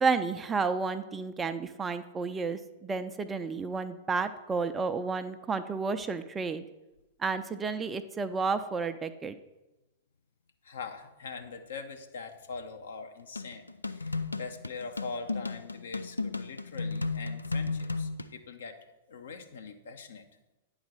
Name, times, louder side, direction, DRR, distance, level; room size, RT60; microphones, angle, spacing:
voice 1, 0.0-6.6 7.2-9.3, right 4 dB, 15° right, 10 dB, 0.5 m, -31 dB
voice 2, 10.6-20.2, left 4 dB, 65° left, 5 dB, 0.9 m, -42 dB
sound 1, 13.4-18.3, left 3 dB, 85° left, 0.4 m, -34 dB
9.5 x 4.1 x 6.2 m, 1.0 s
figure-of-eight pair, 100°, 0 cm